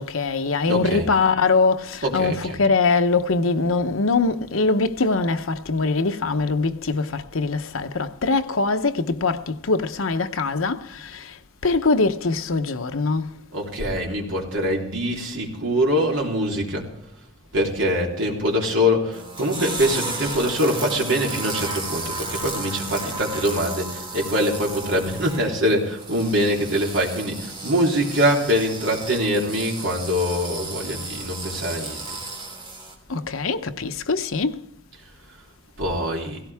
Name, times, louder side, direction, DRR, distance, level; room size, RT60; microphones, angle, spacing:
voice 1, 0.0-11.4 11.6-13.3 33.1-34.6, left 3 dB, 90° left, 0.9 m, -22 dB
voice 2, 0.7-1.1 2.0-2.6 13.5-16.9 17.5-32.2 35.8-36.4, equal, 70° right, 3.4 m, -23 dB
sound 1, 19.1-32.9, right 2 dB, 25° right, 2.8 m, -34 dB
17.0 x 16.5 x 3.5 m
head